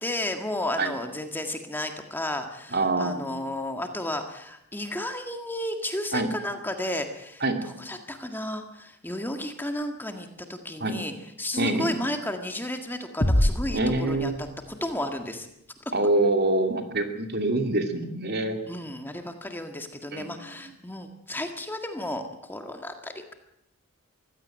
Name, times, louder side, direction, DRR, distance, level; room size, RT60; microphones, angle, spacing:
voice 1, 0.0-11.1 11.4-15.5 18.7-23.3, left 1 dB, 10° left, 5 dB, 1.8 m, -33 dB
voice 2, 2.7-3.3 6.1-6.3 7.4-7.6 10.8-11.0 11.6-11.9 13.7-14.4 15.9-18.6 20.1-20.5, right 2 dB, 45° right, 6 dB, 2.6 m, -25 dB
sound 1, 13.2-14.9, left 1 dB, 30° left, 1.2 m, -25 dB
23.5 x 16.0 x 9.1 m, 0.77 s
head